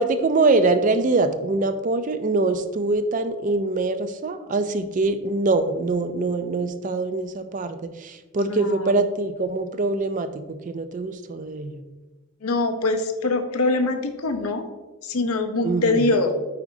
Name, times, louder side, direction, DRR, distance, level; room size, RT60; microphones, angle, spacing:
voice 1, 0.0-11.8 15.6-16.1, right 3 dB, 35° right, 10 dB, 0.4 m, -24 dB
voice 2, 8.5-9.0 12.4-14.6 15.0-16.3, left 2 dB, 85° left, 7 dB, 0.7 m, -23 dB
9.2 x 4.0 x 2.7 m, 1.2 s
head